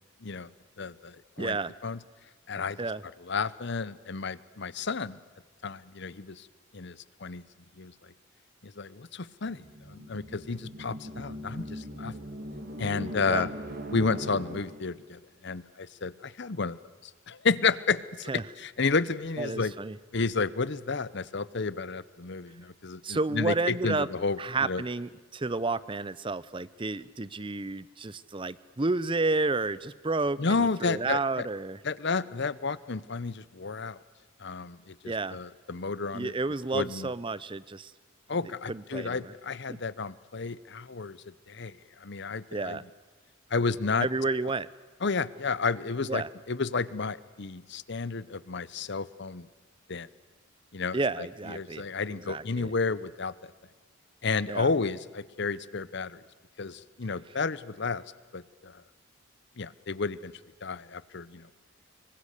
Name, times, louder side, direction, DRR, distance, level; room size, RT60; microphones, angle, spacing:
voice 1, 0.2-0.5 0.8-1.6 1.8-2.0 2.5-2.8 3.2-5.2 5.6-6.5 6.7-7.4 7.8-8.1 8.6-12.2 12.8-13.5 13.9-16.8 17.0-19.7 20.1-24.8 30.4-31.5 31.8-34.0 34.4-36.3 36.7-37.1 38.3-42.8 43.5-44.1 45.0-49.5 49.9-50.1 50.7-53.5 54.2-56.2 56.6-58.0 58.3-58.8 59.6-60.3 60.6-61.5, left 4 dB, 60° left, 18 dB, 0.8 m, -31 dB
voice 2, 1.4-1.7 2.8-3.0 13.3-13.5 18.3-18.4 19.4-20.0 23.0-24.1 24.4-31.8 35.0-35.4 36.1-37.9 38.7-39.3 39.7-39.8 42.5-42.8 44.0-44.7 46.1-46.3 50.9-51.9 52.2-52.7 54.5-54.7, right 3 dB, 25° right, 18 dB, 0.6 m, -31 dB
sound 1, 9.5-15.0, equal, 45° right, 2.3 m, -40 dB
25.5 x 24.0 x 6.7 m, 1.4 s
head